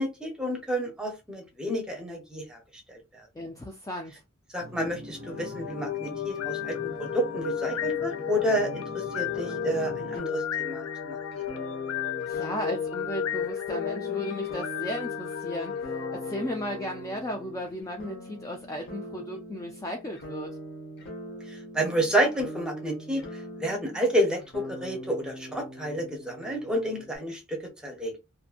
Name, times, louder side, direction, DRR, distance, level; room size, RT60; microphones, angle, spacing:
voice 1, 0.0-2.6 2.9-3.0 4.5-11.2 21.5-28.1, equal, 5° right, 0.8 m, -30 dB
voice 2, 3.3-4.2 12.3-20.6, equal, 15° left, 0.3 m, -35 dB
sound 1, 4.6-10.2, equal, 50° right, 0.5 m, -43 dB
sound 2, 5.2-17.3, left 9 dB, 90° left, 0.5 m, -33 dB
sound 3, 9.3-27.2, right 1 dB, 55° left, 0.8 m, -42 dB
2.7 x 2.5 x 2.4 m
head